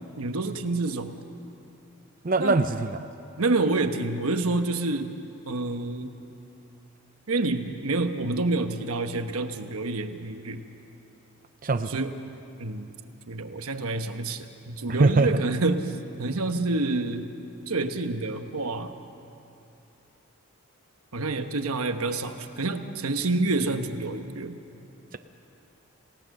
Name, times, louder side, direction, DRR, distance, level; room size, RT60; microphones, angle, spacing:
voice 1, 0.2-1.2 2.4-2.6 3.4-5.1 5.4-6.1 7.3-10.6 11.9-12.1 12.6-12.9 13.3-17.3 17.7-18.9 21.1-24.6, right 2 dB, 90° right, 7 dB, 1.2 m, -28 dB
voice 2, 2.2-3.0 11.6-12.0 14.9-15.3, right 3 dB, 40° right, 8 dB, 0.5 m, -22 dB
28.5 x 16.5 x 6.6 m, 2.8 s
head